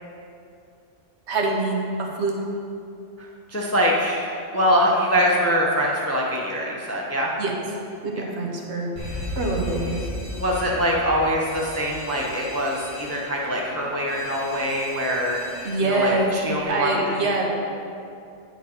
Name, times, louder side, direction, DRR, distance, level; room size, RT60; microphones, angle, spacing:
voice 1, 1.3-2.3 7.4-7.5 8.0-8.9 9.4-10.1 15.6-16.3 16.7-17.5, right 3 dB, 65° right, 0 dB, 1.2 m, -24 dB
voice 2, 3.2-7.3 10.3-17.5, equal, 15° left, -2 dB, 0.5 m, -24 dB
Alarm, 9.0-16.7, left 1 dB, 40° right, 1.4 m, -36 dB
8.5 x 5.3 x 4.2 m, 2.6 s
omnidirectional pair, 1.2 m